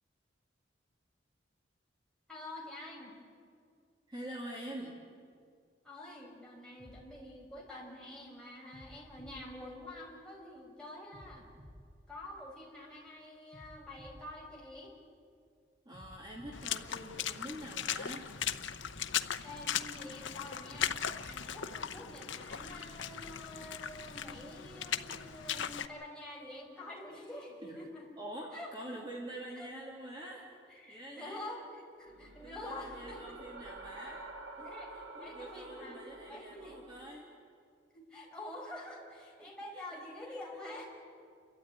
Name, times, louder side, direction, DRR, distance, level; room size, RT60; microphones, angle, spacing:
voice 1, 2.3-3.2 5.8-11.5 12.1-14.9 19.4-28.1 28.5-28.9 29.6-29.7 30.7-33.4 34.6-36.8 37.9-40.9, left 1 dB, 5° left, -3 dB, 5.5 m, -47 dB
voice 2, 4.1-5.0 15.8-18.3 27.6-27.8 28.2-31.5 32.4-34.2 34.6-37.3 39.4-39.8, right 1 dB, 25° right, -2 dB, 2.7 m, -46 dB
sound 1, 6.8-8.1 8.7-10.4 11.1-12.9 13.5-15.3 15.9-17.7 18.3-20.0 20.7-22.1, equal, 45° right, 5.8 m, -56 dB
Water / Splash splatter, 16.5-25.9, left 9 dB, 80° left, 0.8 m, -38 dB
sound 2, 32.0-37.2, right 2 dB, 85° right, 1.8 m, -49 dB
30.0 x 13.0 x 9.6 m, 2.2 s
head